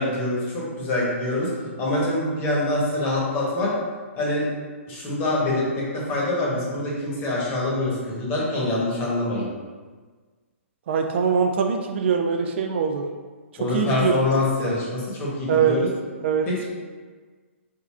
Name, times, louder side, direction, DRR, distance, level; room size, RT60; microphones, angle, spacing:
voice 1, 0.0-1.5 1.8-3.7 4.2-4.5 4.9-9.5 13.6-15.9 16.5-16.6, left 2 dB, 30° left, -5 dB, 1.1 m, -25 dB
voice 2, 10.9-13.0 13.7-14.2 15.5-15.8 16.2-16.5, right 6 dB, 55° right, 4 dB, 0.3 m, -22 dB
3.6 x 2.3 x 3.2 m, 1.4 s
hypercardioid pair, 130°, 7 cm